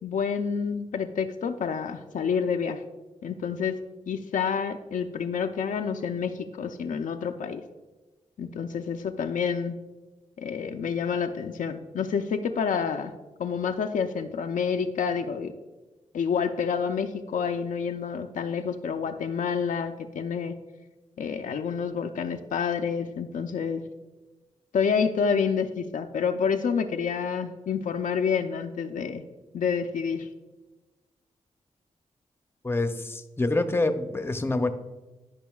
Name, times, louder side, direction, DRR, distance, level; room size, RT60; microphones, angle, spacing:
voice 1, 0.0-2.8 3.2-3.8 4.1-7.6 8.4-9.8 10.4-13.1 13.4-15.5 16.1-20.6 21.2-23.8 24.7-29.2 29.5-30.3, left 6 dB, 75° left, 6 dB, 0.5 m, -28 dB
voice 2, 32.6-34.7, left 2 dB, 15° left, 8 dB, 0.6 m, -26 dB
11.0 x 5.2 x 2.3 m, 1.2 s
cardioid pair, 60°, 13 cm